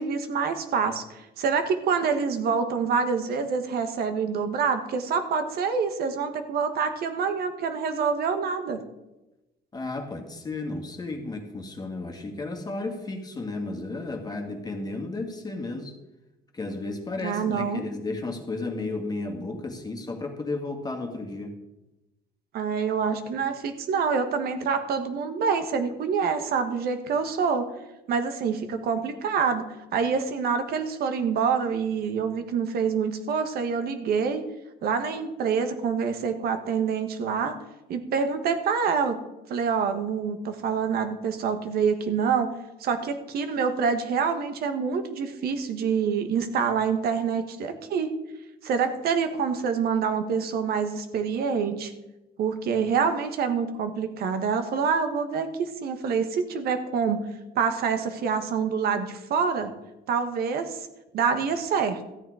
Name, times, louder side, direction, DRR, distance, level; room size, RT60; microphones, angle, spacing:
voice 1, 0.0-8.8 17.2-17.8 22.5-27.7 28.1-29.6 29.9-34.4 34.8-37.6 37.9-39.2 39.5-42.5 42.8-48.1 48.6-51.9 52.4-57.2 57.5-59.7 60.1-60.8 61.1-62.0, right 6 dB, 65° right, 8 dB, 1.4 m, -26 dB
voice 2, 9.7-15.9 16.5-21.6, left 2 dB, 25° left, 4 dB, 1.9 m, -33 dB
14.0 x 8.9 x 4.9 m, 1.0 s
cardioid pair, 110°, 17 cm